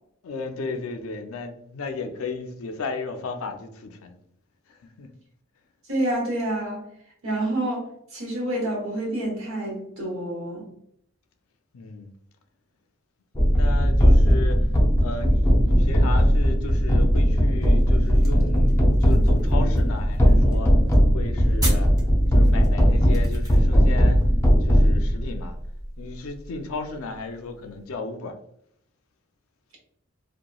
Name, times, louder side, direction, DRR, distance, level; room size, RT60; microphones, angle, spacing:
voice 1, 0.2-4.2 4.7-5.1 11.7-12.1 13.5-14.7 15.0-20.7 21.1-21.9 22.3-24.2 24.6-25.5 26.0-28.4, left 3 dB, 75° left, 0.4 m, -34 dB
voice 2, 5.9-6.9 7.2-10.7, right 1 dB, 75° right, 1.2 m, -28 dB
sound 1, 13.4-25.5, equal, 15° left, 0.5 m, -18 dB
sound 2, 17.6-23.9, right 1 dB, 20° right, 0.9 m, -40 dB
2.9 x 2.2 x 2.3 m
head